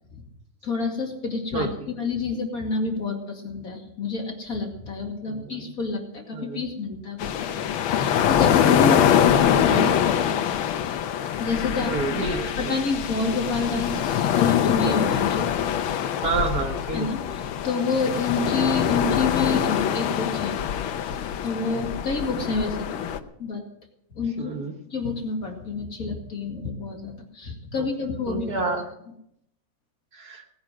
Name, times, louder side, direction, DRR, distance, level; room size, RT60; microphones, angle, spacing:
voice 1, 0.6-10.3 11.4-15.5 16.9-17.2 17.6-20.6 21.4-23.0 23.4-23.6 24.2-24.6 24.9-28.7, left 4 dB, 45° left, 1 dB, 2.8 m, -28 dB
voice 2, 1.5-2.0 5.3-5.7 6.3-6.6 11.8-12.7 16.2-17.3 24.4-24.7 27.8-27.9 28.3-28.9 30.1-30.4, right 4 dB, 50° right, 4 dB, 1.9 m, -29 dB
sound 1, 7.2-23.2, left 9 dB, 90° left, 1.7 m, -24 dB
18.0 x 9.4 x 6.2 m, 0.76 s
omnidirectional pair, 2.2 m